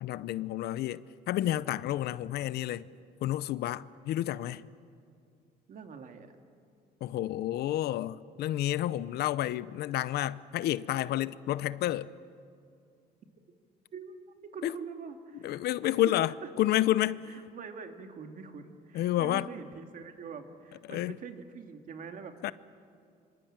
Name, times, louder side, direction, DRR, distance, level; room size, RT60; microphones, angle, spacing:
voice 1, 0.0-2.8 3.2-4.6 7.0-12.1 14.6-14.7 15.4-17.2 18.9-19.5 20.9-21.2 22.4-22.5, left 14 dB, 70° left, 0.7 m, -30 dB
voice 2, 5.7-6.3 13.9-14.2 14.5-16.5 17.2-22.4, right 6 dB, 50° right, 2.4 m, -44 dB
25.5 x 25.5 x 8.9 m
cardioid pair, 110°, 17 cm